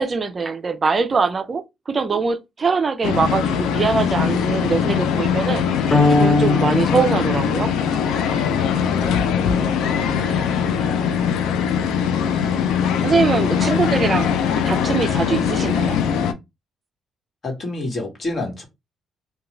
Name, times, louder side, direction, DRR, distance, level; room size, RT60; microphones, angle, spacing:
voice 1, 0.0-7.7 9.4-9.7 11.2-11.3 13.0-14.3 14.6-16.0, right 5 dB, 35° right, 0.4 m, -22 dB
sound 1, 3.0-16.3, left 7 dB, 90° left, 0.4 m, -21 dB
sound 2, 5.9-8.2, left 3 dB, 25° left, 0.6 m, -21 dB
voice 2, 17.4-18.6, left 2 dB, 45° left, 1.3 m, -29 dB
2.4 x 2.2 x 3.0 m
cardioid pair, 90°, 0 cm